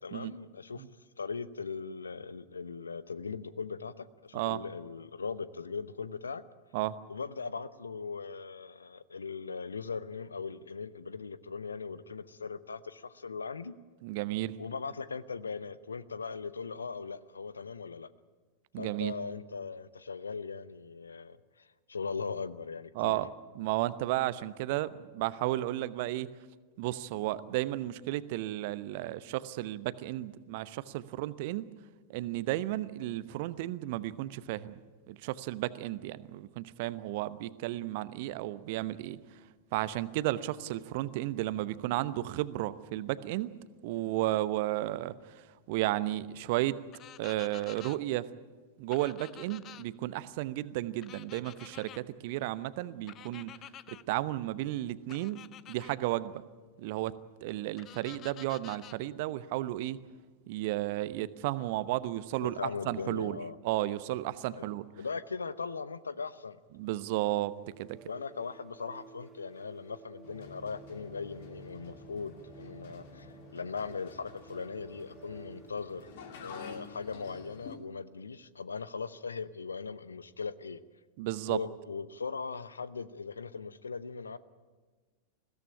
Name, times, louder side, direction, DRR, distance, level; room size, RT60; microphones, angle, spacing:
voice 1, 0.0-0.8 1.2-6.4 7.1-13.7 14.6-18.1 18.8-23.2 62.4-63.5 64.5-64.7 65.0-66.6 68.0-76.1 76.4-80.8 81.5-84.4, left 5 dB, 75° left, 17 dB, 0.8 m, -39 dB
voice 2, 14.0-14.6 18.7-19.1 23.0-23.3 23.5-26.3 26.8-31.7 32.1-34.8 35.1-39.2 39.7-43.5 43.8-45.1 45.7-46.8 47.2-48.3 48.8-53.5 53.9-55.4 55.7-56.4 56.8-57.1 57.4-60.0 60.5-62.6 62.9-63.4 63.6-64.8 66.7-68.0 81.2-81.6, right 16 dB, 50° right, 16 dB, 0.9 m, -33 dB
sound 1, 46.9-48.0 48.9-49.8 51.0-52.0 53.1-54.0 55.1-55.9 57.8-59.0, left 11 dB, 30° left, 0.6 m, -50 dB
sound 2, 67.6-76.0, right 4 dB, 15° right, 1.9 m, -55 dB
sound 3, 70.2-77.8, left 4 dB, 55° left, 2.6 m, -50 dB
21.0 x 16.5 x 10.0 m, 1.4 s
figure-of-eight pair, 90°, 0 cm